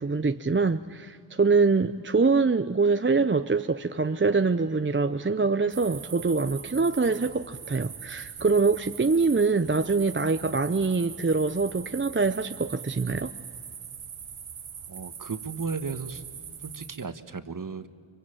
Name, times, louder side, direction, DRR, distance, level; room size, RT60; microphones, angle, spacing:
voice 1, 0.0-13.3, right 4 dB, 25° right, 0.7 m, -24 dB
Wind instrument woodwind instrument, 3.0-7.5, left 8 dB, 10° left, 2.2 m, -50 dB
sound 1, 5.7-17.1, right 7 dB, 90° right, 1.3 m, -42 dB
voice 2, 14.9-16.2 16.7-17.9, right 5 dB, 40° right, 1.4 m, -34 dB
24.5 x 24.0 x 9.0 m
cardioid pair, 50°, 48 cm